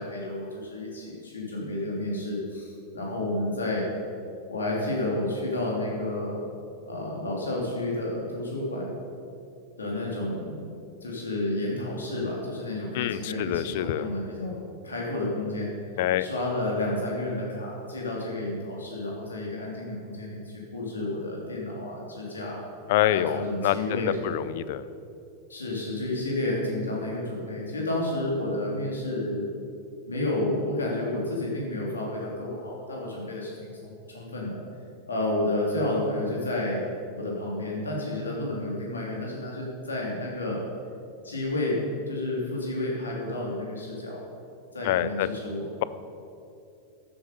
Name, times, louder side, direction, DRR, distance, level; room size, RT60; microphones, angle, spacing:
voice 1, 0.0-3.9 4.5-6.5 6.9-9.0 9.8-10.6 11.0-14.6 14.8-15.7 16.2-22.6 23.1-24.4 25.5-29.5 30.1-34.6 35.1-36.9 37.1-40.6 41.2-41.8 42.1-44.2 44.7-45.7, left 1 dB, 85° left, -3 dB, 3.1 m, -31 dB
voice 2, 12.9-14.1 16.0-16.3 22.9-24.8 44.8-45.3, left 13 dB, 60° left, 16 dB, 0.5 m, -26 dB
13.5 x 8.2 x 5.4 m, 2.7 s
hypercardioid pair, 90°, 0 cm